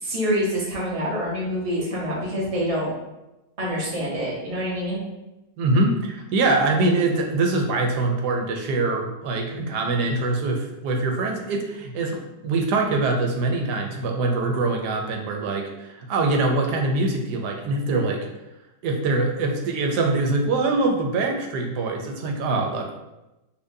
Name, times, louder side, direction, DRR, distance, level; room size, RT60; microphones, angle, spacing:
voice 1, 0.0-2.9 3.6-5.0, equal, 25° right, -6 dB, 0.8 m, -26 dB
voice 2, 5.6-18.3 18.8-22.9, right 2 dB, 90° right, 2 dB, 1.2 m, -23 dB
4.3 x 2.4 x 2.6 m, 0.98 s
omnidirectional pair, 1.7 m